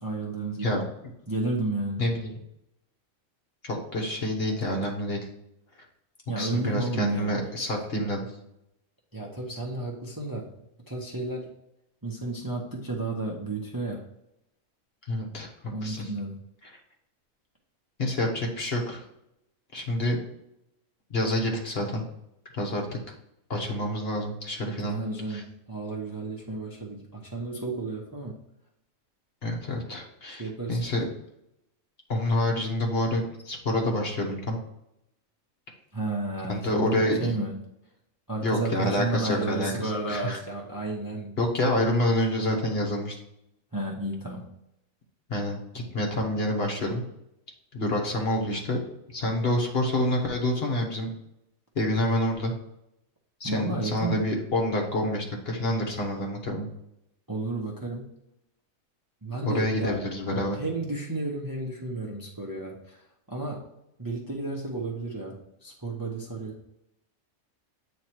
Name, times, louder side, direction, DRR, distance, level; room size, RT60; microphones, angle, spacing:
voice 1, 0.0-0.8 1.3-2.0 6.3-7.3 9.1-10.5 10.9-11.5 12.0-14.0 15.7-16.4 24.9-28.4 30.4-30.8 35.9-37.6 38.3-41.4 43.7-44.5 53.4-54.2 57.3-58.1 59.2-60.0 60.5-63.0 63.3-63.6 64.0-66.6, right 2 dB, 20° right, -1 dB, 0.8 m, -32 dB
voice 2, 2.0-2.4 3.6-5.2 6.4-8.3 15.1-16.0 18.0-19.0 19.7-20.2 21.1-22.0 22.5-23.0 23.5-25.0 25.3-25.4 29.4-30.4 30.7-31.0 32.1-34.6 36.5-37.3 38.4-40.4 41.4-43.1 45.3-47.0 47.7-48.8 49.1-51.1 51.7-52.5 53.4-56.7 59.4-60.6, left 1 dB, 45° left, 1 dB, 1.4 m, -27 dB
8.5 x 3.2 x 4.5 m, 0.82 s
omnidirectional pair, 1.5 m